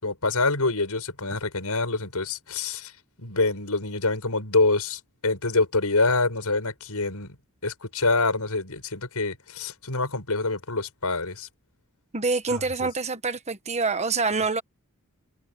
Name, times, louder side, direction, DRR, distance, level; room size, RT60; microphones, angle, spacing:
voice 1, 0.0-2.9 3.2-7.4 7.6-11.5 12.5-12.9, left 3 dB, 90° left, 5.5 m, -26 dB
voice 2, 12.1-14.6, right 4 dB, 30° right, 1.3 m, -26 dB
head